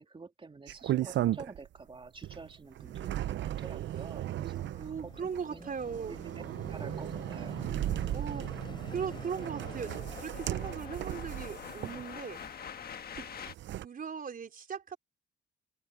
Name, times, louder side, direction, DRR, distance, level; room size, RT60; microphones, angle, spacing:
voice 1, 0.0-5.7 6.1-6.3 6.7-7.7, right 4 dB, 25° right, 3.5 m, -49 dB
sound 1, 0.7-1.8 2.2-12.5 13.2-13.9, right 13 dB, 65° right, 0.6 m, -36 dB
Fixed-wing aircraft airplane, 2.7-12.9, left 3 dB, 25° left, 4.3 m, -52 dB
sound 2, 4.0-13.5, left 8 dB, 50° left, 1.4 m, -48 dB
voice 2, 4.8-6.2 8.1-8.5 8.9-12.4 13.1-13.3 13.8-15.0, right 6 dB, 45° right, 4.4 m, -39 dB
cardioid pair, 90°, 20 cm